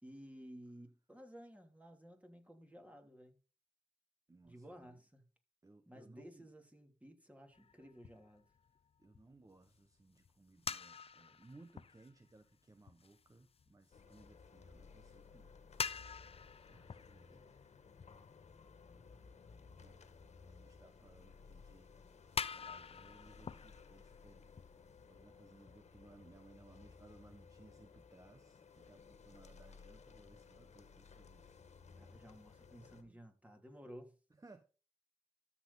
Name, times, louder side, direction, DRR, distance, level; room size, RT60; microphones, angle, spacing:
voice 1, 0.0-3.4 4.4-5.3 5.9-8.5 16.7-17.0 17.3-17.5 32.0-34.1, equal, 10° right, 3.0 m, -55 dB
voice 2, 4.3-5.0 5.6-6.5 9.0-15.5 16.3-17.4 19.6-20.0 20.4-21.9 22.3-31.6 32.0-32.4 32.9-33.2 34.3-34.6, right 2 dB, 30° right, 1.2 m, -62 dB
sound 1, 7.5-15.2 15.4-18.6 19.1-19.2 20.0-20.5 20.8-20.9 21.3-21.4 21.9-22.0 22.3-25.3 25.7-25.8 26.2-26.3 26.5-27.4, left 6 dB, 60° left, 0.7 m, -47 dB
sound 2, 13.9-33.0, left 5 dB, 80° left, 1.7 m, -59 dB
13.0 x 7.5 x 4.1 m
cardioid pair, 50°, 12 cm